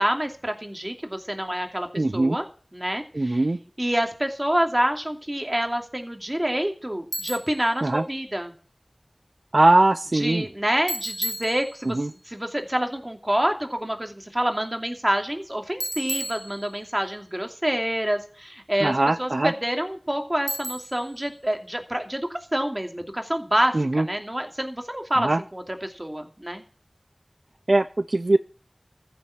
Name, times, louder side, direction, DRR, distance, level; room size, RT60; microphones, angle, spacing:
voice 1, 0.0-1.9 2.1-2.4 2.7-3.4 3.8-8.5 10.1-12.0 12.3-18.9 19.2-26.6, right 1 dB, 25° right, 4 dB, 2.6 m, -27 dB
voice 2, 1.9-2.4 3.1-3.6 7.8-8.0 9.5-10.5 11.8-12.1 18.8-19.5 23.7-24.1 25.2-25.4 27.7-28.4, right 2 dB, 65° right, 12 dB, 0.6 m, -21 dB
Bicycle, 7.1-7.6 10.9-12.1 15.8-17.1 20.5-21.1, equal, 5° right, 1.3 m, -33 dB
14.5 x 6.9 x 8.8 m, 0.40 s
wide cardioid pair, 40°, 0 cm